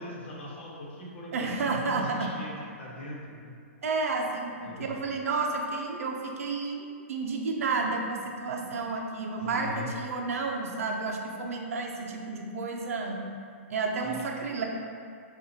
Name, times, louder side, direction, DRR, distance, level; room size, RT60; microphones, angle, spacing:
voice 1, 0.0-3.6 4.6-5.1 9.3-9.9 14.0-14.2, left 1 dB, 50° left, -5 dB, 1.1 m, -41 dB
voice 2, 1.3-2.3 3.8-13.2 13.7-14.6, right 3 dB, 80° right, 1 dB, 0.6 m, -31 dB
6.6 x 2.5 x 2.8 m, 2.3 s
hypercardioid pair, 175°, 8 cm